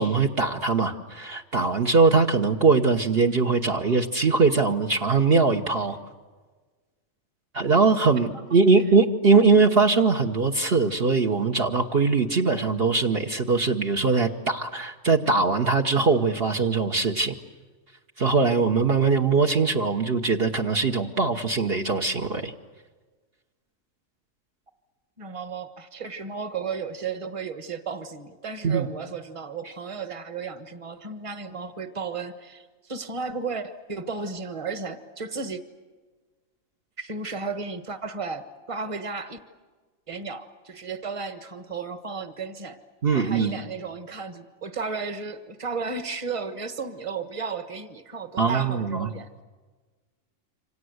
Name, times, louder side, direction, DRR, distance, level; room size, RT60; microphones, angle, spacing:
voice 1, 0.0-6.0 7.5-17.3 18.2-22.5 28.6-28.9 43.0-43.6 48.4-49.1, right 4 dB, 50° right, 2 dB, 1.3 m, -21 dB
voice 2, 25.2-35.6 37.0-39.4 40.1-42.8 43.1-49.4, right 4 dB, 25° right, 9 dB, 1.4 m, -34 dB
28.0 x 26.0 x 8.0 m, 1.4 s
omnidirectional pair, 1.4 m